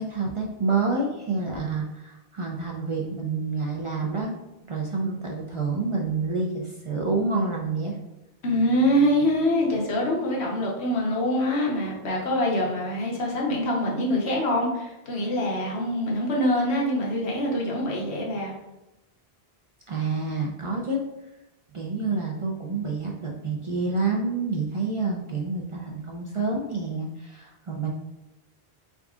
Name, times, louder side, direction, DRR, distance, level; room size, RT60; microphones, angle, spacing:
voice 1, 0.0-4.3 4.6-8.0 19.9-21.0 21.7-27.9, right 3 dB, 55° right, -1 dB, 0.3 m, -28 dB
voice 2, 8.4-18.5, left 1 dB, 90° left, -2 dB, 1.2 m, -24 dB
3.6 x 3.6 x 2.3 m, 0.93 s
omnidirectional pair, 1.1 m